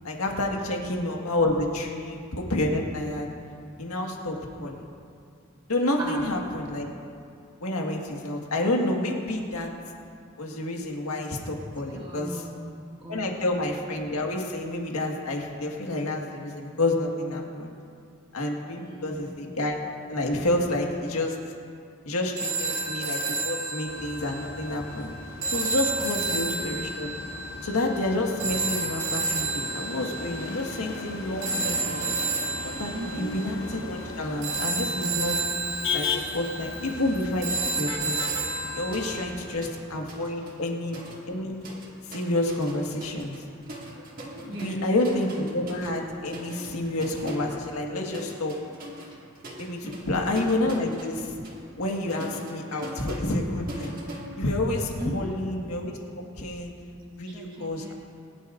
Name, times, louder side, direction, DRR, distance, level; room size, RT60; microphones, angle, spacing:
voice 1, 0.0-3.3 3.8-4.8 5.7-6.9 7.6-9.7 10.4-12.4 13.1-17.7 18.3-19.8 20.1-21.4 22.0-25.1 25.5-27.1 27.6-32.0 32.6-35.4 35.9-38.2 38.7-41.6 42.1-43.4 44.4-48.5 49.6-51.3 51.8-53.9 54.4-56.7 57.2-57.9, left 1 dB, 80° left, 0 dB, 1.7 m, -29 dB
voice 2, 0.6-0.9 4.5-4.7 5.6-5.7 6.0-6.3 11.7-13.5 18.8-19.6 26.0-26.6 32.9-33.4 35.5-36.3 38.6-38.7 40.1-40.5 44.4-44.9 49.0-49.2 49.8-50.2 55.0-55.3 57.2-57.9, right 1 dB, 20° right, -3 dB, 1.0 m, -40 dB
sound 1, 22.4-39.3, right 3 dB, 60° right, 2.1 m, -31 dB
Motor vehicle (road), 23.9-39.5, left 4 dB, 60° left, 1.3 m, -38 dB
sound 2, 36.4-36.7 37.0-39.8 40.1-55.0, equal, 40° right, 2.0 m, -42 dB
23.0 x 11.0 x 2.6 m, 2.4 s
head